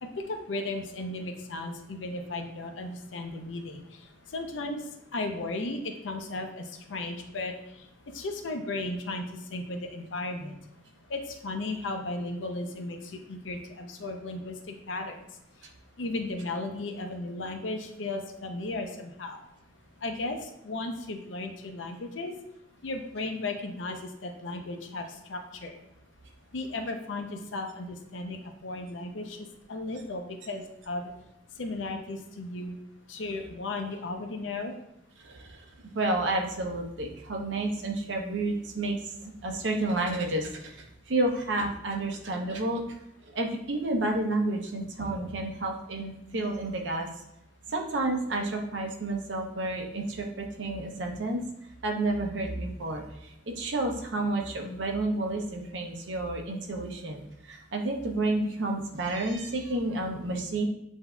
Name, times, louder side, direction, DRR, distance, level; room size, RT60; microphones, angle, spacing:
voice 1, 0.0-3.8 4.3-4.8 5.1-7.5 8.1-9.2 9.5-10.6 11.1-15.2 16.0-19.4 20.0-20.4 20.6-22.3 22.8-25.8 26.5-29.4 29.7-31.1 31.6-32.8 33.1-34.7, left 2 dB, 90° left, 5 dB, 0.6 m, -35 dB
voice 2, 35.2-35.6 35.9-42.8 43.3-47.1 47.7-51.4 51.8-60.6, right 2 dB, 80° right, 2 dB, 0.8 m, -30 dB
7.9 x 2.7 x 2.3 m, 0.80 s
head